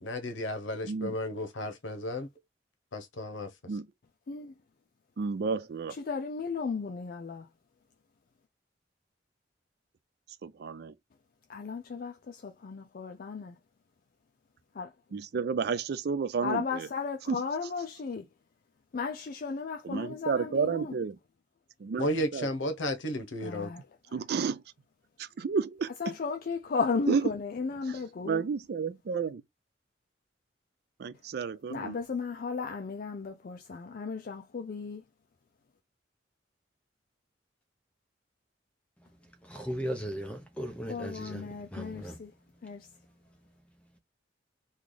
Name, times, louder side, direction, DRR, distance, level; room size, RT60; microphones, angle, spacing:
voice 1, 0.0-2.3 2.9-3.5 22.0-23.7, left 1 dB, 90° left, 0.8 m, -33 dB
voice 2, 0.8-1.2 3.7-3.9 5.2-6.0 10.4-10.9 15.1-16.9 17.3-17.4 19.8-21.2 21.8-22.5 24.1-24.6 25.2-26.2 27.1-27.3 27.8-29.4 31.0-32.0, right 5 dB, 55° right, 0.4 m, -31 dB
voice 3, 6.1-7.5 11.5-13.6 14.8-14.9 16.4-18.2 18.9-20.8 23.4-23.8 26.0-28.4 31.7-35.0 40.9-42.3 42.6-42.9, left 5 dB, 50° left, 0.4 m, -35 dB
voice 4, 39.0-44.0, equal, 5° left, 0.7 m, -40 dB
3.2 x 2.4 x 3.8 m
head